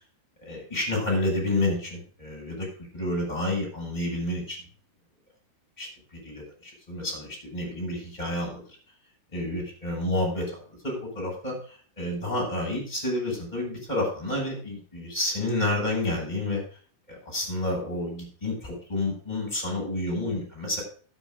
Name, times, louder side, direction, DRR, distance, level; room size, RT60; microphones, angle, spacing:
voice 1, 0.4-2.7 2.9-4.6 5.8-8.6 9.3-16.6 17.1-20.8, left 1 dB, 10° left, -2 dB, 6.8 m, -30 dB
13.0 x 9.3 x 3.9 m, 0.42 s
omnidirectional pair, 5.7 m